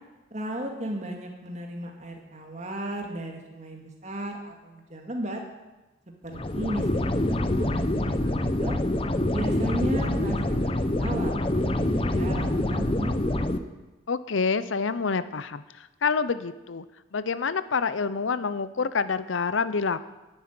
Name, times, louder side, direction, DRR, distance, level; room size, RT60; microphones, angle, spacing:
voice 1, 0.3-5.4 6.1-6.9 7.3-8.8 9.3-11.4 11.7-13.4, right 1 dB, 35° right, 2 dB, 2.1 m, -35 dB
sound 1, 6.3-13.6, left 1 dB, 30° left, 0.7 m, -26 dB
voice 2, 14.1-16.8 17.1-20.0, left 5 dB, 75° left, 14 dB, 0.7 m, -27 dB
10.5 x 9.8 x 9.5 m, 1.1 s
head